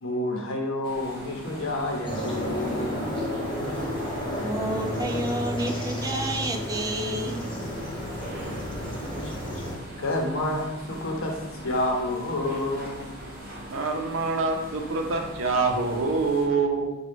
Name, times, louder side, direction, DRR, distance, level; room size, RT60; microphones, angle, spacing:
voice 1, 0.0-3.3 9.2-9.3 10.0-11.4 11.6-13.1, left 1 dB, 85° left, 1 dB, 0.7 m, -29 dB
sound 1, 0.8-16.5, right 1 dB, 50° right, 0.9 m, -42 dB
sound 2, 2.1-9.8, equal, 25° left, 0.8 m, -31 dB
voice 2, 4.4-7.4, right 1 dB, 20° right, 4 dB, 0.3 m, -30 dB
voice 3, 13.7-17.0, right 4 dB, 85° right, 3 dB, 0.6 m, -25 dB
4.9 x 2.3 x 3.3 m, 1.1 s
head